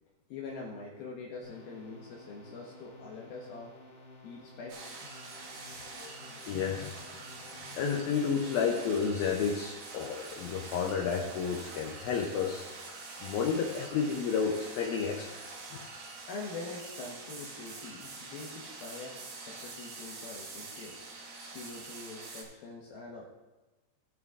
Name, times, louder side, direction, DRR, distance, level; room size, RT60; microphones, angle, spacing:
voice 1, 0.3-3.7 4.2-5.0 16.3-19.1 19.5-21.0 21.4-23.3, left 3 dB, 70° left, -2 dB, 2.5 m, -44 dB
sound 1, 1.4-9.0, left 2 dB, 55° left, 1.5 m, -54 dB
sound 2, 4.7-22.4, right 3 dB, 60° right, 2.2 m, -45 dB
voice 2, 6.5-7.0 7.8-12.7 13.2-15.4 15.7-15.8, left 6 dB, 90° left, 1 dB, 2.0 m, -31 dB
16.5 x 5.9 x 3.6 m, 1.1 s
omnidirectional pair, 5.3 m